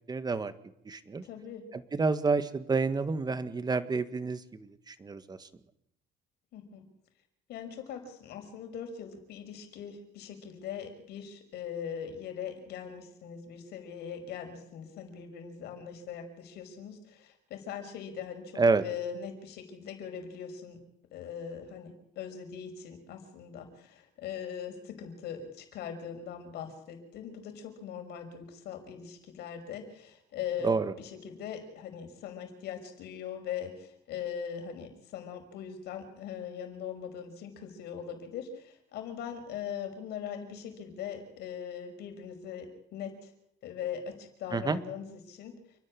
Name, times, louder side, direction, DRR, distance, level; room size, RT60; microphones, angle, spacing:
voice 1, 0.1-0.5 0.8-1.2 1.7-5.5 18.6-18.8 30.6-30.9 44.5-44.8, right 4 dB, 25° right, 11 dB, 1.8 m, -29 dB
voice 2, 1.2-1.6 6.5-6.8 7.5-20.8 21.1-30.7 31.0-43.3 43.6-45.6, left 8 dB, 75° left, 6 dB, 5.7 m, -41 dB
29.0 x 11.0 x 9.9 m, 0.76 s
cardioid pair, 110°, 17 cm